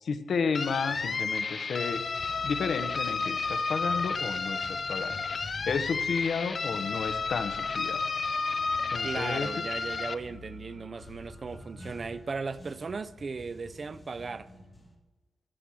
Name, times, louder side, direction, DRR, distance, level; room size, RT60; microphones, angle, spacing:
voice 1, 0.0-2.0 2.4-8.0 8.9-9.5, left 5 dB, 65° left, 0.9 m, -32 dB
sound 1, 0.5-10.1, left 4 dB, 40° left, 0.5 m, -31 dB
sound 2, 2.2-14.9, left 1 dB, 15° left, 1.7 m, -49 dB
voice 2, 9.0-14.5, right 4 dB, 40° right, 0.5 m, -37 dB
14.0 x 6.5 x 7.4 m
wide cardioid pair, 150°, 0 cm